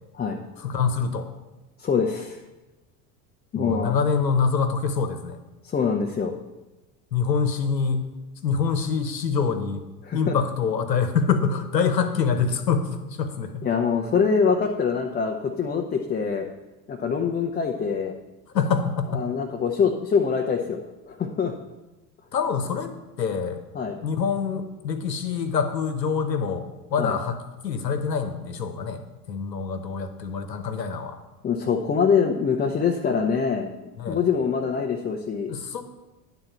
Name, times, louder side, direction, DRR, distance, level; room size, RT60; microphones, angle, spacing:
voice 1, 0.6-1.3 3.5-5.4 7.1-8.1 8.4-9.8 10.1-13.7 18.5-19.3 22.3-22.9 23.2-23.6 24.0-31.2 34.0-34.2 35.5-35.8, left 5 dB, 90° left, 7 dB, 1.0 m, -25 dB
voice 2, 1.8-2.4 3.5-3.9 5.6-6.3 10.0-10.4 13.6-16.5 16.9-18.1 19.1-20.8 21.1-21.5 23.7-24.0 27.0-27.1 31.4-33.7 34.1-35.5, left 6 dB, 20° left, 2 dB, 0.7 m, -24 dB
9.9 x 4.0 x 7.0 m, 1.1 s
hypercardioid pair, 80°, 49 cm